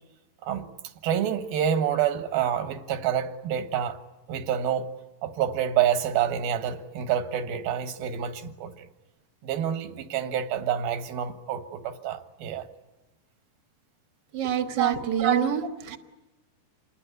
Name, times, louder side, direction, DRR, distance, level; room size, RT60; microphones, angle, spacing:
voice 1, 1.0-4.0 4.3-4.9 5.2-8.7 9.4-12.7 14.7-15.3, right 9 dB, 85° right, 3.3 m, -27 dB
voice 2, 14.3-16.0, right 8 dB, 50° right, 1.3 m, -26 dB
27.5 x 20.5 x 9.5 m
omnidirectional pair, 4.1 m